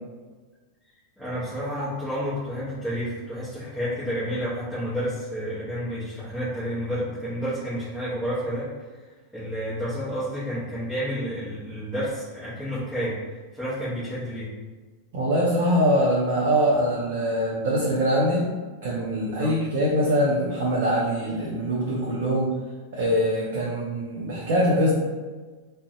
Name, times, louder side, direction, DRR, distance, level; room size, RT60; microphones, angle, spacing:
voice 1, 1.2-8.7 9.0-9.1 9.3-14.5 19.4-19.5 22.2-22.4 23.7-23.8, equal, 5° left, -12 dB, 0.8 m, -30 dB
voice 2, 15.1-18.5 18.8-22.5 22.9-24.9, equal, 55° right, -5 dB, 0.4 m, -23 dB
2.5 x 2.0 x 2.5 m, 1.3 s
figure-of-eight pair, 90°, 0 cm